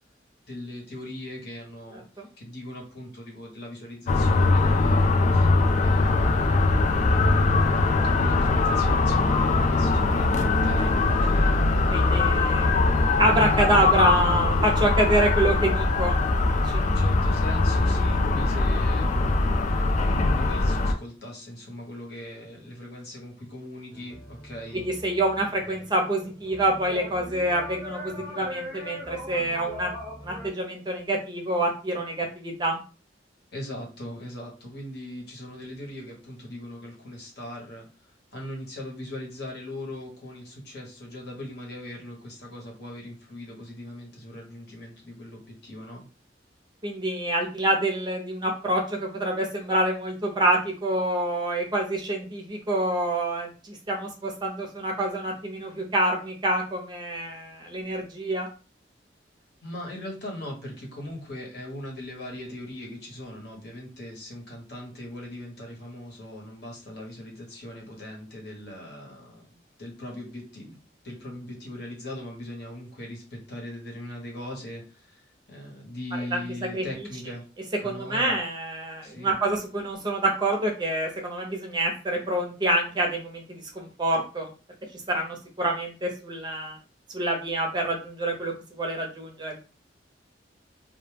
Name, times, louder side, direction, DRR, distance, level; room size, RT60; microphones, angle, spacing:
voice 1, 0.5-5.5 5.8-6.6 8.1-11.5 16.7-19.8 20.2-24.8 33.5-46.0 59.6-70.8 71.0-77.4 77.8-78.4 79.0-79.4, left 1 dB, 60° left, -1 dB, 1.0 m, -40 dB
sound 1, 4.1-20.9, left 3 dB, 40° left, 0.3 m, -22 dB
voice 2, 11.9-12.8 13.2-16.8 24.7-29.9 30.2-32.8 46.8-58.5 76.3-76.4 76.7-77.1 77.8-84.5 85.1-86.8 87.1-89.6, right 1 dB, 25° right, 2 dB, 0.5 m, -27 dB
sound 2, 23.9-30.5, left 1 dB, ahead, 0.9 m, -41 dB
2.2 x 2.1 x 3.2 m, 0.34 s
head